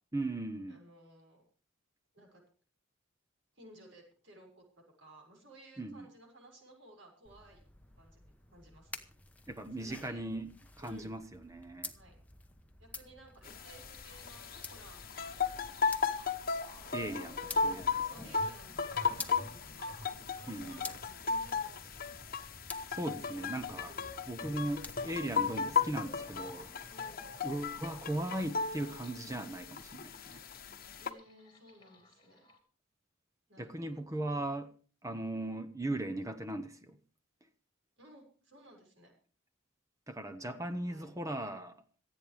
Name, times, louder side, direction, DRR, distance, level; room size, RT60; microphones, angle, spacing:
voice 1, 0.1-0.8 5.8-6.1 9.5-10.5 10.8-11.9 16.9-18.1 20.5-20.8 22.9-23.9 24.3-26.7 27.4-30.4 33.6-34.7 35.0-37.0 40.1-41.8, right 1 dB, 15° right, 0.9 m, -38 dB
voice 2, 0.7-1.4 2.1-2.4 3.5-4.6 5.0-7.6 7.9-8.2 8.5-9.0 9.8-10.2 10.8-11.1 11.9-12.1 12.8-16.0 17.5-17.6 18.0-20.1 20.4-22.1 23.7-24.1 24.5-24.7 26.9-27.2 31.0-32.5 33.5-34.1 38.0-39.1 40.9-41.2, right 1 dB, 65° right, 6.5 m, -57 dB
sound 1, 7.2-26.7, left 3 dB, 10° left, 1.0 m, -51 dB
sound 2, 13.4-31.1, left 5 dB, 45° left, 1.1 m, -36 dB
sound 3, 13.5-32.6, left 1 dB, 25° left, 2.9 m, -55 dB
26.5 x 9.0 x 3.5 m
head